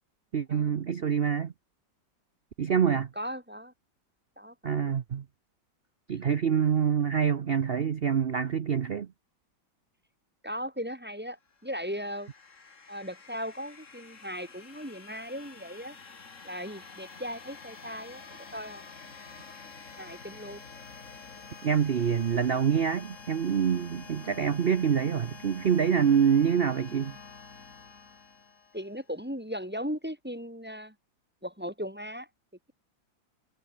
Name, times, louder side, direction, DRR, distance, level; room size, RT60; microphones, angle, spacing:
voice 1, 0.3-1.5 2.6-3.1 4.6-5.2 6.1-9.1 21.6-27.2, right 7 dB, 75° right, 0.5 m, -26 dB
voice 2, 2.9-3.7 4.4-4.9 10.4-12.3 12.9-16.0 16.4-18.8 20.0-20.7 28.7-30.9 31.4-32.3, equal, 5° right, 2.2 m, -38 dB
sound 1, 11.5-29.1, left 4 dB, 40° left, 2.4 m, -48 dB
omnidirectional pair, 2.1 m